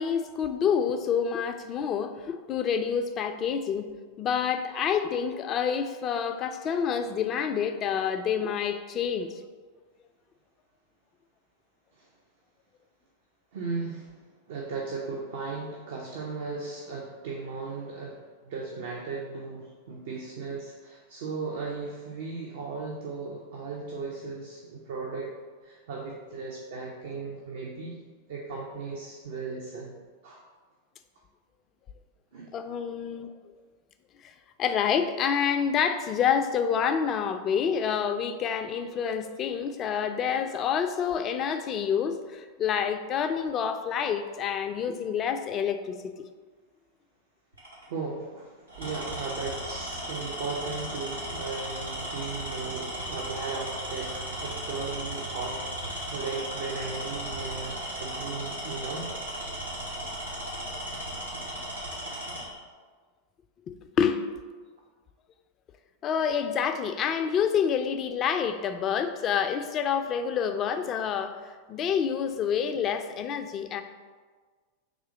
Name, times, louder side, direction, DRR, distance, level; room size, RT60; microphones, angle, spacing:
voice 1, 0.0-3.9 4.2-9.3 32.5-33.3 34.2-34.3 34.6-46.1 64.0-64.2 66.0-71.4 71.7-73.8, left 7 dB, 30° left, 8 dB, 0.3 m, -28 dB
voice 2, 13.5-14.2 14.5-25.3 25.6-28.0 28.3-30.0 30.2-30.4 32.3-32.5 47.9-59.1, right 4 dB, 55° right, -2 dB, 0.6 m, -36 dB
Tools, 47.5-47.8 48.7-62.5, equal, 90° right, 1.5 m, -36 dB
3.7 x 3.0 x 4.7 m, 1.5 s
figure-of-eight pair, 90°, 0 cm